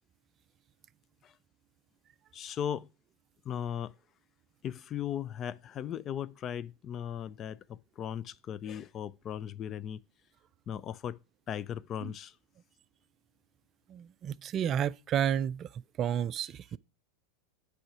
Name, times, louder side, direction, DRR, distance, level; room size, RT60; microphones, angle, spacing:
voice 1, 2.3-2.9 3.4-3.9 4.6-10.0 10.7-11.2 11.5-12.3, left 9 dB, 35° left, 0.4 m, -37 dB
voice 2, 13.9-15.7 16.0-16.8, right 9 dB, 35° right, 0.3 m, -31 dB
8.7 x 4.9 x 4.6 m
hypercardioid pair, 90°, 0 cm